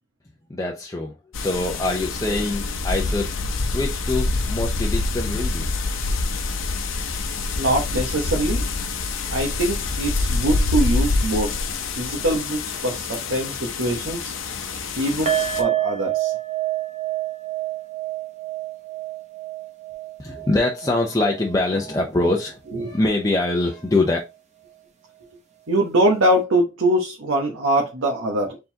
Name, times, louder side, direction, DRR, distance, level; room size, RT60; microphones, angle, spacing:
voice 1, 0.5-3.3 3.6-5.7 20.2-24.2, left 2 dB, 20° left, 0.6 m, -24 dB
sound 1, 1.3-15.6, left 3 dB, 75° left, 0.7 m, -26 dB
voice 2, 7.6-8.7 9.3-11.6 12.0-14.3 15.0-16.3 22.7-22.9 25.7-28.6, right 1 dB, 90° right, 1.0 m, -23 dB
sound 2, 15.2-22.5 22.7-22.9 23.3-23.4, right 13 dB, 35° right, 0.9 m, -28 dB
4.5 x 3.8 x 2.8 m
head